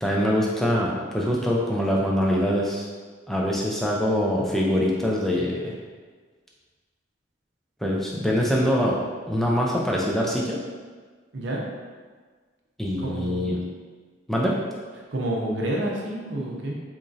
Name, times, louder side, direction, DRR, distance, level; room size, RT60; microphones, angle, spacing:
voice 1, 0.0-2.9 3.3-5.7 7.8-9.0 9.3-10.6 12.8-13.6 14.3-14.6, equal, ahead, -4 dB, 0.3 m, -24 dB
voice 2, 11.3-11.6 13.0-13.5 15.1-16.8, right 1 dB, 60° right, -2 dB, 0.6 m, -29 dB
3.6 x 3.0 x 2.6 m, 1.5 s
head